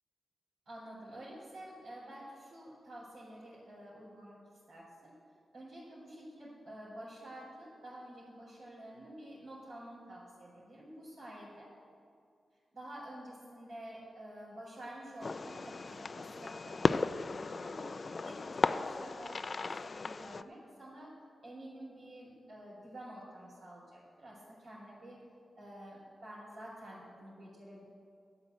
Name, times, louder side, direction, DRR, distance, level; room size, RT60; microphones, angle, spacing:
voice 1, 0.7-4.4 4.7-5.1 5.5-11.7 12.7-18.0 18.2-21.1 21.4-25.2 25.6-27.8, right 1 dB, 85° right, -9 dB, 4.0 m, -49 dB
Fireworks, 15.2-20.4, left 4 dB, 50° left, 0.4 m, -35 dB
11.0 x 8.2 x 8.2 m, 2.3 s
cardioid pair, 65°, 0 cm